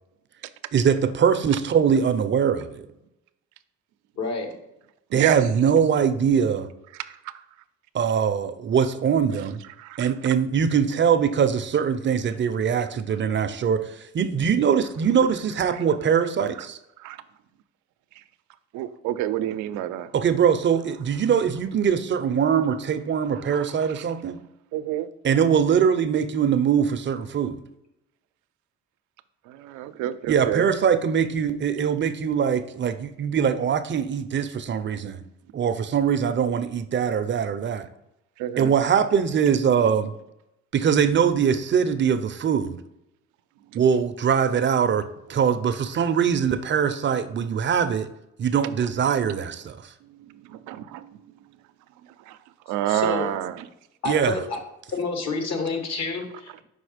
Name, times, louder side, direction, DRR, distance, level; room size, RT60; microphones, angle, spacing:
voice 1, 0.7-2.9 5.1-6.7 7.9-9.6 10.0-16.8 20.1-24.4 25.2-27.6 30.3-35.2 35.5-37.9 38.6-40.1 40.7-42.8 43.7-48.1 48.4-49.9 54.1-54.4, right 7 dB, 40° right, 10 dB, 0.5 m, -22 dB
voice 2, 4.2-4.5 52.9-53.3 54.0-54.6 54.9-56.6, left 4 dB, 65° left, 4 dB, 1.5 m, -29 dB
voice 3, 9.8-10.1 17.0-17.2 18.7-20.1 23.5-23.6 24.7-25.1 29.5-30.6 38.4-38.7 50.7-51.1 52.3-52.4 52.7-53.6, right 13 dB, 90° right, 12 dB, 0.5 m, -28 dB
5.5 x 3.9 x 5.0 m, 0.86 s
cardioid pair, 90°, 29 cm